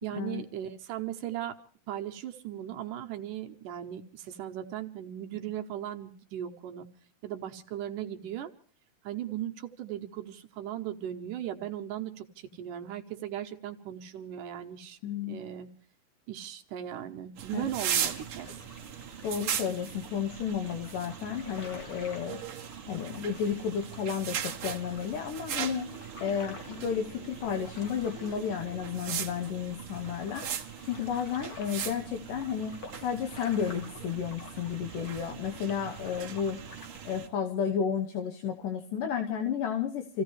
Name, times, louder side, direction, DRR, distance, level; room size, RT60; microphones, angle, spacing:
voice 1, 0.0-1.6 1.9-6.9 7.2-8.5 9.0-15.0 15.3-15.7 16.3-18.5, right 11 dB, 75° right, 5 dB, 2.5 m, -37 dB
voice 2, 15.0-15.4 17.5-17.6 19.2-22.4 22.9-25.9 26.2-30.4 30.8-36.6 37.0-40.2, left 7 dB, 75° left, 6 dB, 2.6 m, -32 dB
sound 1, 17.4-37.3, right 9 dB, 50° right, 1.8 m, -39 dB
sound 2, 17.6-37.1, left 3 dB, 40° left, 1.4 m, -51 dB
28.0 x 16.0 x 3.2 m, 0.43 s
omnidirectional pair, 4.0 m